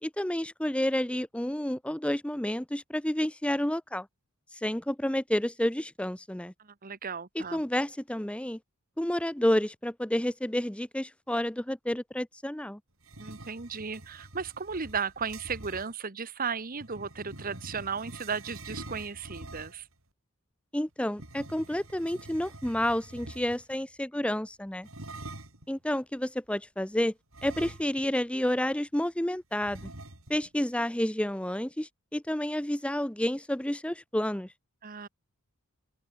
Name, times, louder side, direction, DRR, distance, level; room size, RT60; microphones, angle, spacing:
voice 1, 0.0-4.1 4.5-6.5 7.3-8.6 9.0-12.8 20.7-24.9 25.7-27.1 27.4-29.9 30.3-34.5, left 1 dB, 5° left, 0.7 m, -30 dB
voice 2, 6.6-7.6 13.2-19.9 34.8-35.1, right 5 dB, 40° right, 1.1 m, -35 dB
sound 1, 13.0-15.9 16.8-19.9 21.1-23.8 24.8-25.7 27.3-28.2 28.5-28.6 29.6-30.5, right 2 dB, 65° right, 7.1 m, -46 dB
open air
head